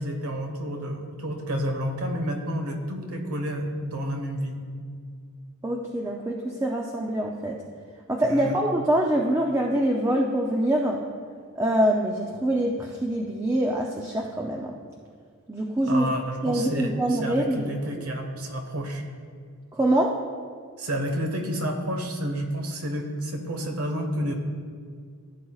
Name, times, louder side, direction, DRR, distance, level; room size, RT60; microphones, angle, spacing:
voice 1, 0.0-4.6 8.2-8.6 15.8-19.0 20.8-24.3, equal, 80° right, 4 dB, 1.3 m, -30 dB
voice 2, 5.6-7.6 8.1-11.0 11.6-14.7 15.5-16.1 16.4-17.7 19.7-20.1, right 1 dB, 15° right, -1 dB, 0.5 m, -24 dB
15.5 x 7.7 x 2.4 m, 2.1 s
head